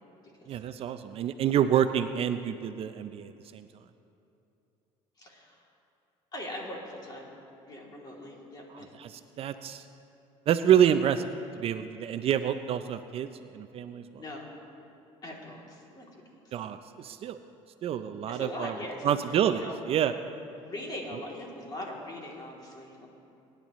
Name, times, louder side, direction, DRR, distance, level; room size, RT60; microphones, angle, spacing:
voice 1, 0.5-3.7 8.7-9.8 10.5-11.3 11.6-14.2 16.5-17.4 17.8-18.7 19.0-20.1, right 9 dB, 50° right, 10 dB, 0.5 m, -28 dB
voice 2, 5.2-5.6 6.3-7.3 7.6-8.9 14.2-14.5 15.2-16.5 18.3-19.1 19.5-19.8 20.6-23.1, left 1 dB, 30° left, -2 dB, 2.8 m, -41 dB
21.0 x 10.5 x 3.1 m, 2.8 s
supercardioid pair, 105°, 13 cm